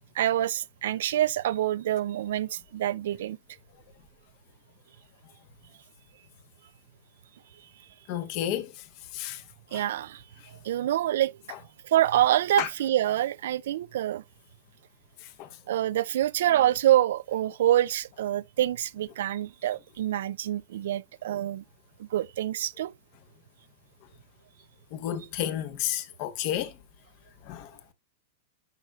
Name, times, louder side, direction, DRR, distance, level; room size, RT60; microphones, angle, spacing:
voice 1, 0.2-3.4 9.7-10.2 10.6-11.4 11.8-14.2 15.7-21.6 22.0-22.9, right 12 dB, 75° right, 0.4 m, -26 dB
voice 2, 8.1-8.7 9.1-9.4 12.6-12.7 24.9-26.7 27.5-27.7, left 11 dB, 50° left, 1.0 m, -30 dB
10.5 x 4.5 x 2.3 m
hypercardioid pair, 135°, 0 cm